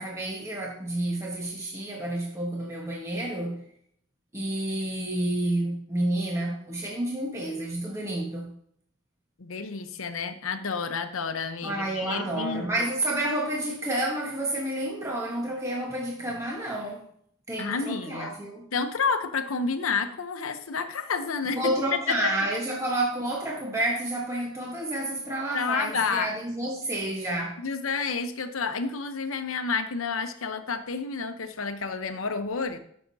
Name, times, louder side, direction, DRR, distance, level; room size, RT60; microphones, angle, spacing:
voice 1, 0.0-3.6 4.3-8.5 11.6-17.1 17.5-18.7 21.4-27.6, right 1 dB, 15° right, 1.2 m, -30 dB
voice 2, 9.4-12.8 17.6-18.3 18.7-21.6 22.1-22.3 25.5-26.3 27.6-32.8, left 5 dB, 85° left, 0.9 m, -30 dB
13.5 x 6.5 x 2.8 m
head